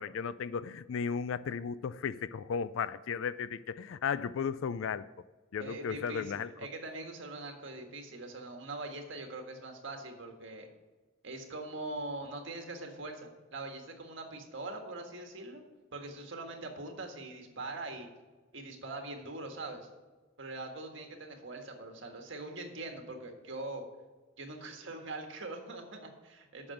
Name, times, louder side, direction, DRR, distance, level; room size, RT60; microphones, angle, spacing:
voice 1, 0.0-5.0 5.5-6.5, left 6 dB, 80° left, 16 dB, 0.4 m, -35 dB
voice 2, 5.6-10.7 11.2-15.6 15.9-18.1 18.5-19.9 20.4-23.8 24.4-26.7, right 2 dB, 65° right, 3 dB, 1.7 m, -42 dB
8.6 x 6.2 x 7.7 m, 1.3 s
head